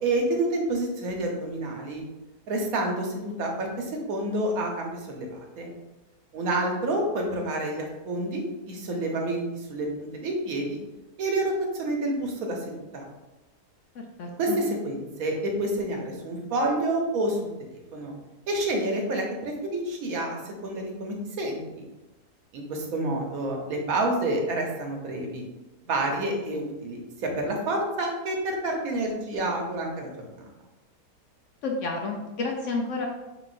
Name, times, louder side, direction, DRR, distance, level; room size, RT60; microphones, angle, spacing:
voice 1, 0.0-2.0 2.5-5.7 6.3-10.8 11.2-13.1 14.4-18.1 18.5-21.8 22.5-25.4 25.8-30.5, right 1 dB, 65° right, 1 dB, 1.2 m, -29 dB
voice 2, 13.9-14.6 31.6-33.1, left 3 dB, 65° left, 2 dB, 0.8 m, -31 dB
5.3 x 4.0 x 2.5 m, 1.1 s
omnidirectional pair, 1.7 m